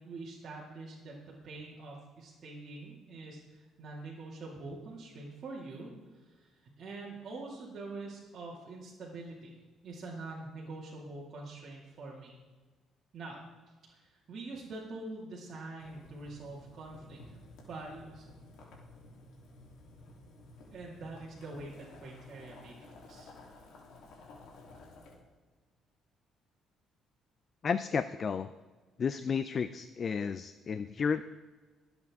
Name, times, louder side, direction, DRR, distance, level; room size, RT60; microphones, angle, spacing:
voice 1, 0.0-5.9 6.2-9.5 9.8-12.4 13.1-13.4 13.9-17.4 17.7-18.3 20.7-23.3, right 2 dB, 40° right, -5 dB, 2.2 m, -45 dB
Boiling, 15.8-25.1, left 2 dB, 75° left, 3.0 m, -54 dB
voice 2, 27.6-28.5 29.0-31.2, left 6 dB, 35° left, 12 dB, 0.4 m, -32 dB
23.5 x 8.1 x 3.6 m, 1.4 s
cardioid pair, 140°, 0 cm